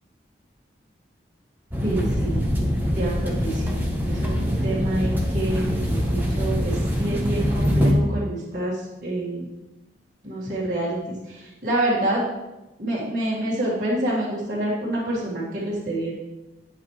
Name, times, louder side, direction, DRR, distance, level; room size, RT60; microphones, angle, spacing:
sound 1, 1.7-7.9, equal, 10° right, 1.0 m, -24 dB
voice 1, 1.8-2.4 2.9-3.8 4.1-9.5 10.2-12.2 12.8-16.1, right 1 dB, 50° right, -9 dB, 1.9 m, -27 dB
9.0 x 8.6 x 3.2 m, 1.1 s
head